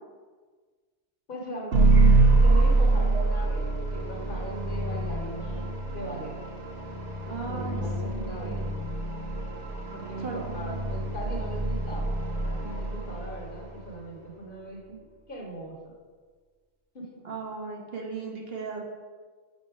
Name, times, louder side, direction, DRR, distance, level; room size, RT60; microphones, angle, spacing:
voice 1, 1.3-1.7 2.3-5.6 5.9-6.3 7.5-8.7 9.9-12.1 12.4-15.0 15.3-15.9 16.9-17.2, equal, 50° left, -1 dB, 1.1 m, -39 dB
sound 1, 1.7-13.9, right 2 dB, 75° right, 1.2 m, -25 dB
voice 2, 7.3-8.9 10.2-10.5 17.2-18.9, right 4 dB, 55° right, 0 dB, 1.0 m, -37 dB
5.3 x 4.2 x 4.8 m, 1.5 s
omnidirectional pair, 1.2 m